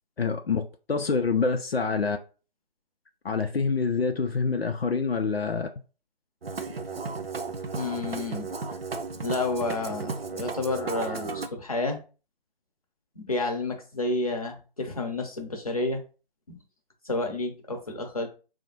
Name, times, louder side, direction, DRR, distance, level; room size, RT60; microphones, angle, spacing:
voice 1, 0.2-2.2 3.2-5.7, left 4 dB, 80° left, 0.5 m, -26 dB
Musical instrument, 6.4-11.5, right 4 dB, 75° right, 0.6 m, -34 dB
voice 2, 7.8-8.5 9.2-12.0 13.2-16.0 16.5-16.6 17.0-18.3, left 2 dB, 35° left, 0.7 m, -30 dB
4.8 x 2.1 x 2.8 m
figure-of-eight pair, 155°, 30 cm